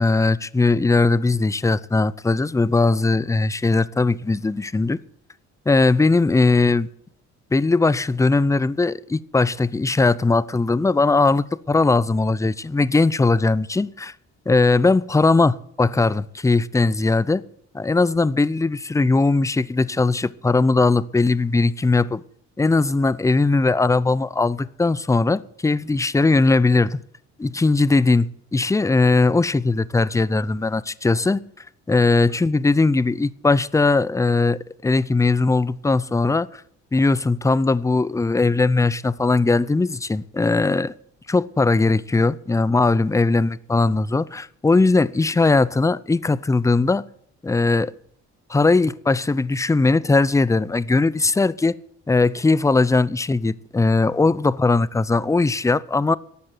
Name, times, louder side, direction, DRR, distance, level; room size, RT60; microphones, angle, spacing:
voice 1, 0.0-5.0 5.7-6.9 7.5-14.1 14.5-17.4 17.7-22.2 22.6-27.0 27.4-31.4 31.9-36.6 36.9-40.9 41.3-47.0 47.4-47.9 48.5-51.7 52.1-56.2, left 3 dB, 10° left, 0.5 m, -19 dB
12.5 x 8.6 x 8.0 m
cardioid pair, 90°, 30 cm